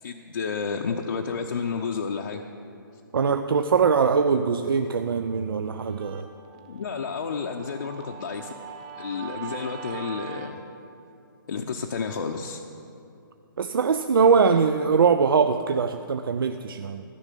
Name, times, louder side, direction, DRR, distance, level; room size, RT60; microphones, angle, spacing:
voice 1, 0.0-2.4 6.7-8.6 9.0-10.6 11.5-12.6, left 5 dB, 60° left, 1 dB, 0.8 m, -31 dB
voice 2, 3.1-6.3 13.6-17.0, right 5 dB, 80° right, 8 dB, 0.6 m, -22 dB
Guitar, 5.0-10.5, right 7 dB, 20° right, 0.6 m, -42 dB
13.5 x 6.1 x 9.2 m, 2.7 s
hypercardioid pair, 165°, 12 cm